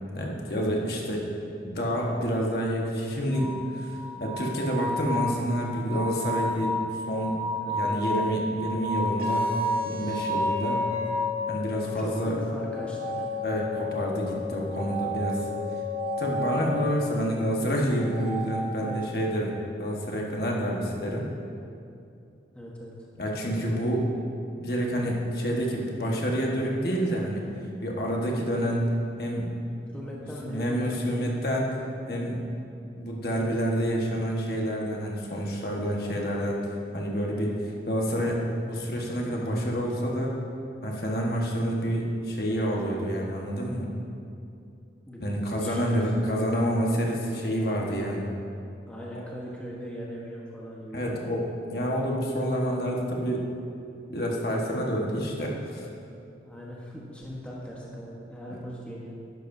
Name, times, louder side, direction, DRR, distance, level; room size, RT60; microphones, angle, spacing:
voice 1, 0.1-1.2 1.6-3.9 4.2-6.8 7.1-7.3 7.7-9.4 9.8-10.9 11.5-12.3 13.4-15.5 16.2-21.3 23.2-24.1 24.6-27.4 27.8-28.9 29.2-29.5 30.2-31.7 32.1-32.4 33.0-36.6 36.9-37.5 37.9-40.3 40.8-43.9 45.2-48.3 49.1-49.2 50.9-53.4 54.1-55.9 58.5-58.6, equal, 55° left, -2 dB, 1.4 m, -28 dB
sound 1, 3.3-11.4 12.7-14.0 14.7-16.7 17.9-19.2, equal, 35° right, 1.0 m, -32 dB
voice 2, 7.6-8.0 11.8-13.3 18.8-19.1 22.5-22.9 29.9-30.7 31.2-31.3 45.1-45.2 45.6-46.1 48.9-51.4 56.3-59.2, equal, 5° left, -5 dB, 1.2 m, -39 dB
sound 2, 9.2-17.2, left 11 dB, 50° right, 2.0 m, -35 dB
11.5 x 11.0 x 2.7 m, 2.6 s
head